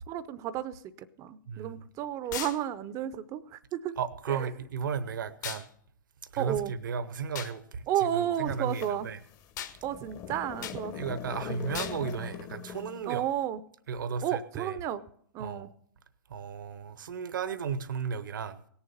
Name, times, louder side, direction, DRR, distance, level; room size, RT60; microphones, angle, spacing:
voice 1, 0.1-0.8 1.2-4.0 4.3-4.5 6.4-6.7 7.9-9.1 9.8-11.0 13.0-13.6 14.2-15.0 15.3-15.7, right 11 dB, 30° right, 0.6 m, -32 dB
voice 2, 1.5-1.8 4.0-5.7 6.3-7.9 8.1-9.2 11.0-13.2 13.9-14.7 15.4-15.6 16.3-18.6, right 6 dB, 70° right, 1.0 m, -34 dB
sound 1, 2.3-2.6 5.4-5.7 7.3-7.5 9.6-9.8 10.6-10.8 11.7-12.0, left 10 dB, 60° left, 1.5 m, -37 dB
sound 2, 8.5-13.1, left 8 dB, 30° left, 1.0 m, -41 dB
17.5 x 7.2 x 6.8 m
hypercardioid pair, 120°, 11 cm